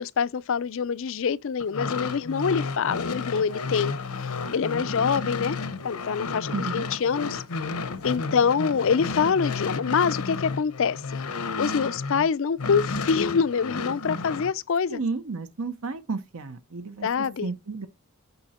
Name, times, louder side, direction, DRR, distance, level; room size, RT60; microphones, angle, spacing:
voice 1, 0.0-3.9 4.5-5.6 5.8-7.4 8.0-11.2 11.6-15.0 17.0-17.5, left 6 dB, 60° left, 0.4 m, -25 dB
sound 1, 1.6-12.3 12.6-14.5, left 4 dB, 85° left, 0.9 m, -32 dB
voice 2, 6.5-6.8 14.9-17.9, right 4 dB, 70° right, 0.9 m, -32 dB
9.4 x 5.9 x 4.3 m
head